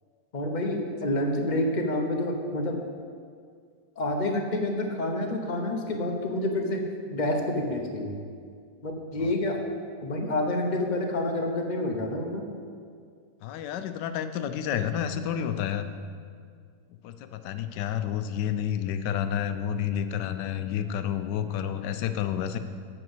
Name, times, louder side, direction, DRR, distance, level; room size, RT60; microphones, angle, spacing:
voice 1, 0.3-2.8 4.0-6.8 7.1-8.2 8.8-9.6 10.0-12.4, left 1 dB, 35° left, 3 dB, 0.8 m, -28 dB
voice 2, 13.4-15.9 17.0-22.6, left 9 dB, 85° left, 10 dB, 1.2 m, -30 dB
7.8 x 5.8 x 7.8 m, 2.2 s
omnidirectional pair, 1.8 m